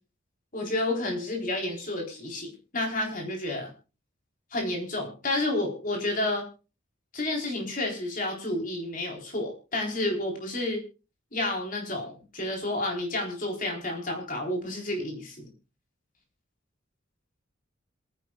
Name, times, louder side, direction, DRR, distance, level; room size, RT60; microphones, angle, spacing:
voice 1, 0.5-3.7 4.5-6.5 7.1-10.8 11.3-15.5, left 2 dB, 40° left, 1 dB, 3.9 m, -30 dB
26.5 x 10.0 x 2.4 m, 0.32 s
head